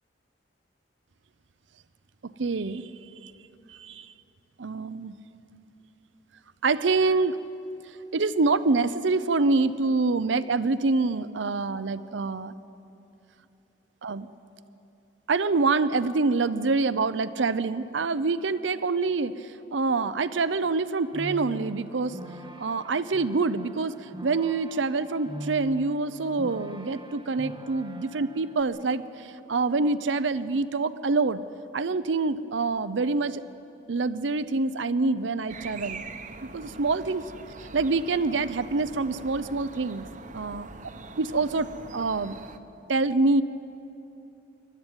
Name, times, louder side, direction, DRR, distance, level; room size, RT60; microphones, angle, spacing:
voice 1, 2.2-2.9 3.2-3.3 3.7-4.1 4.6-5.1 6.6-7.4 8.1-12.5 14.0-14.3 15.3-22.2 22.6-31.4 31.7-33.4 33.9-36.0 36.4-37.3 37.7-40.0 40.3-40.6 41.2-42.4 42.9-43.4, right 3 dB, 80° right, 14 dB, 0.6 m, -26 dB
sound 1, 20.6-28.6, right 1 dB, 25° right, 1.4 m, -43 dB
sound 2, 35.5-42.6, right 3 dB, 40° right, 0.9 m, -43 dB
29.0 x 12.0 x 9.0 m, 2.9 s
head